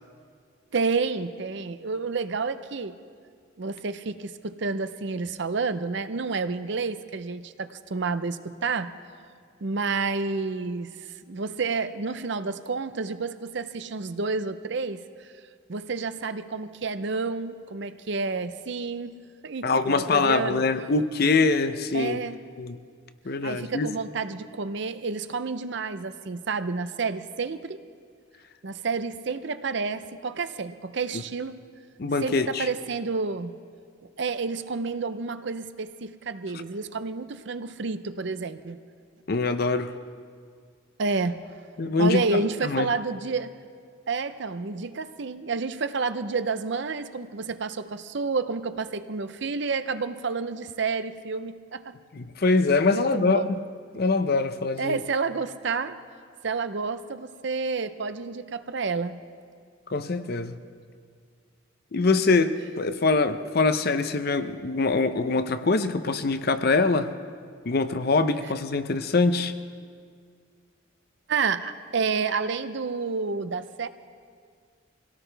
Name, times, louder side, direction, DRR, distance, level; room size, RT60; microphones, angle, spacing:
voice 1, 0.7-2.9 3.6-8.9 9.6-15.0 15.7-19.2 19.4-20.6 21.9-22.4 23.4-27.8 28.6-31.6 32.2-33.5 34.2-38.8 41.0-41.4 42.0-43.5 44.1-51.9 52.9-53.5 54.8-55.9 56.4-59.2 71.3-73.9, right 4 dB, 60° right, 11 dB, 0.6 m, -30 dB
voice 2, 19.6-22.2 22.6-22.8 23.2-23.9 31.1-31.2 32.0-32.7 39.3-39.9 41.8-42.9 52.1-53.6 53.9-55.0 59.9-60.6 61.9-67.1 67.6-69.5, left 3 dB, 50° left, 10 dB, 0.7 m, -24 dB
24.5 x 17.0 x 3.4 m, 2.1 s
head